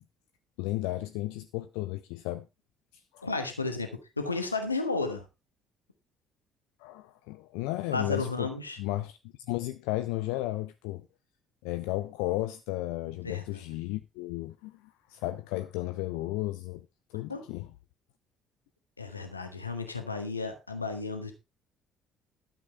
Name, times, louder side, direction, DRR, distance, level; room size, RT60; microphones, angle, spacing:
voice 1, 0.6-2.5 2.9-3.3 6.8-8.5 8.8-9.2 9.5-11.1 11.6-17.7, left 17 dB, 70° left, 0.6 m, -34 dB
voice 2, 3.2-3.9 4.2-5.2 7.9-8.8 13.2-13.6 17.3-17.4 19.0-21.3, left 3 dB, 90° left, 1.5 m, -33 dB
12.0 x 7.6 x 4.4 m
figure-of-eight pair, 50°, 0 cm